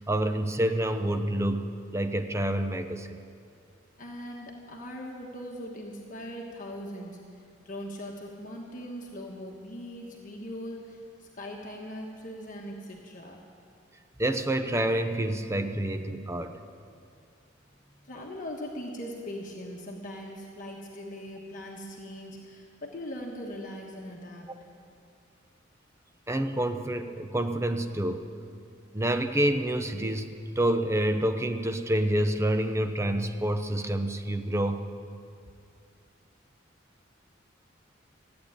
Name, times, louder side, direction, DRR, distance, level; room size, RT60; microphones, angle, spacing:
voice 1, 0.0-3.2 14.2-16.6 26.3-28.3 28.9-34.8, right 1 dB, 15° right, 7 dB, 0.7 m, -28 dB
voice 2, 4.0-13.5 18.0-24.5, equal, 40° left, -1 dB, 1.3 m, -40 dB
14.5 x 8.7 x 9.8 m, 2.3 s
head